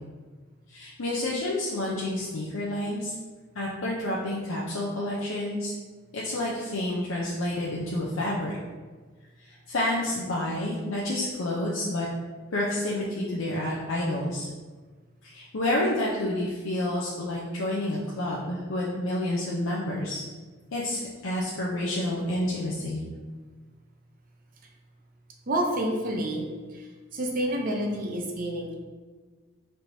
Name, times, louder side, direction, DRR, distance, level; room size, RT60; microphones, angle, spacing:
voice 1, 0.7-3.1 3.5-5.7 6.1-8.5 9.4-12.1 12.5-14.5 15.2-20.2 20.7-23.0, left 1 dB, 75° left, -5 dB, 0.6 m, -29 dB
voice 2, 25.5-28.7, right 1 dB, 40° right, 1 dB, 0.5 m, -29 dB
4.4 x 3.3 x 2.7 m, 1.4 s
head